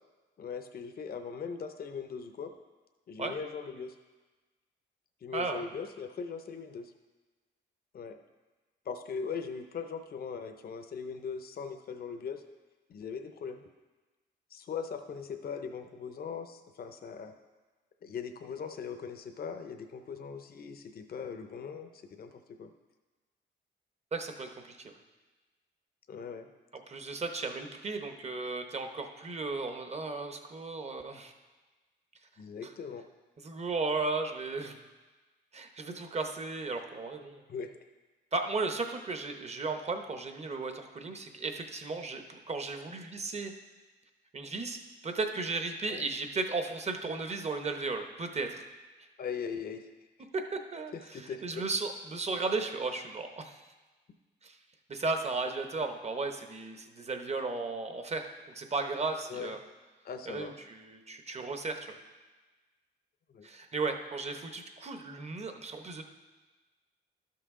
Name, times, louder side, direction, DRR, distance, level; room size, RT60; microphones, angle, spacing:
voice 1, 0.4-2.5 3.1-4.0 5.2-6.9 7.9-8.2 8.9-12.4 12.9-13.6 14.5-17.3 18.0-22.7 26.1-26.5 32.4-33.0 37.5-37.7 45.9-46.0 49.2-49.8 50.9-51.6 59.3-59.5 60.0-60.5 63.3-63.5, left 6 dB, 50° left, 7 dB, 0.6 m, -40 dB
voice 2, 5.3-5.6 24.1-24.9 26.9-31.3 32.6-32.7 33.4-34.8 35.5-37.4 38.3-43.5 44.3-44.8 45.0-48.6 50.3-53.6 54.4-54.6 54.9-58.3 58.5-59.6 60.3-61.9 63.4-66.0, right 3 dB, 35° right, 6 dB, 0.8 m, -35 dB
12.0 x 5.8 x 3.7 m, 1.3 s
cardioid pair, 90°, 20 cm